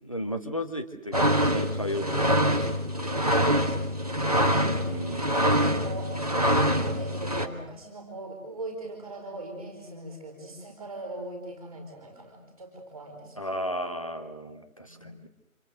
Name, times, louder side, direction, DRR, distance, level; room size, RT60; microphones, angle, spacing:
voice 1, 0.0-2.9 4.7-5.3 13.4-15.3, equal, 25° left, 6 dB, 1.2 m, -34 dB
sound 1, 1.1-7.5, equal, 25° right, 1.4 m, -25 dB
voice 2, 3.2-5.1 5.6-6.1 6.5-13.4 14.8-15.2, right 1 dB, 5° right, -10 dB, 3.6 m, -41 dB
27.5 x 27.0 x 6.6 m, 0.83 s
figure-of-eight pair, 170°, 43 cm